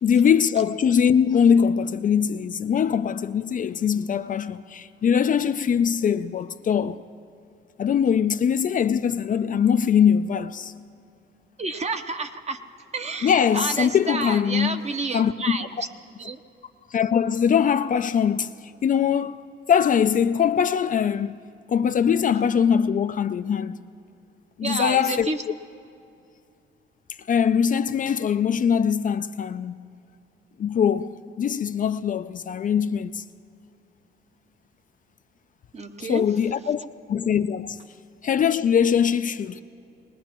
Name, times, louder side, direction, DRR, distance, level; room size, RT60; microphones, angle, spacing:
voice 1, 0.0-7.0 7.8-10.7 13.2-14.8 15.1-15.9 16.9-18.5 18.8-21.4 21.7-23.8 24.6-25.3 27.3-29.8 30.6-33.2 36.0-36.8 37.1-37.8 38.2-39.6, left 7 dB, 40° left, 0.4 m, -22 dB
voice 2, 11.6-12.6 12.9-15.9 16.2-16.4 24.6-25.4 35.7-36.3, right 3 dB, 35° right, 0.8 m, -30 dB
21.5 x 19.5 x 3.0 m
cardioid pair, 90°, 20 cm